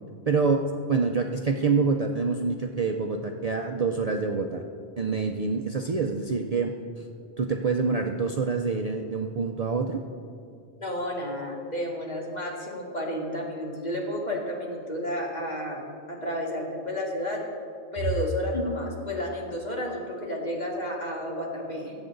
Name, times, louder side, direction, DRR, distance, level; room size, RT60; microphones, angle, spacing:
voice 1, 0.3-4.6 5.0-7.1 7.4-10.0, right 4 dB, 45° right, 3 dB, 0.6 m, -26 dB
voice 2, 10.8-17.4 17.9-21.9, left 1 dB, 40° left, -2 dB, 2.1 m, -31 dB
22.0 x 8.1 x 3.9 m, 2.4 s
omnidirectional pair, 1.1 m